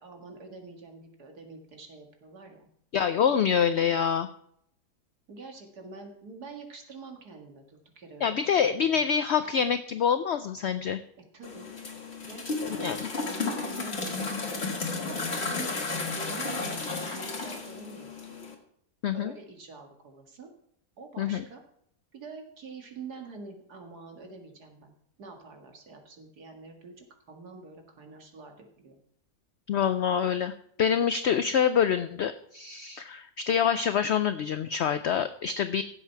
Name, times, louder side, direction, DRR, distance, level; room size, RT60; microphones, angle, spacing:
voice 1, 0.0-2.7 3.2-3.5 5.3-9.0 11.3-11.7 12.2-14.5 14.9-18.4 19.1-20.5 21.0-21.6 22.1-24.9 25.2-29.0, right 3 dB, 85° right, 3 dB, 2.4 m, -46 dB
voice 2, 2.9-4.3 8.2-11.0 12.6-13.0 19.0-19.3 21.2-21.4 29.7-30.5 30.8-35.8, left 8 dB, 65° left, 11 dB, 0.7 m, -26 dB
sound 1, 11.4-18.5, left 3 dB, 40° left, 1.9 m, -33 dB
16.0 x 7.5 x 4.6 m, 0.69 s
omnidirectional pair, 1.6 m